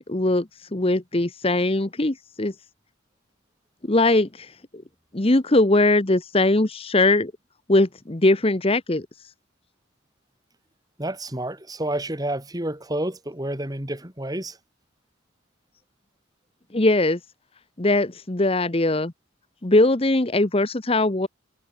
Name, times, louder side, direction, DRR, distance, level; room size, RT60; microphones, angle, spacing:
voice 1, 0.0-2.5 3.9-4.8 5.1-7.3 7.7-9.1 16.7-17.2 17.8-19.1 19.6-21.3, left 2 dB, 30° left, 1.0 m, -21 dB
voice 2, 11.0-14.6, right 1 dB, 20° right, 3.0 m, -29 dB
head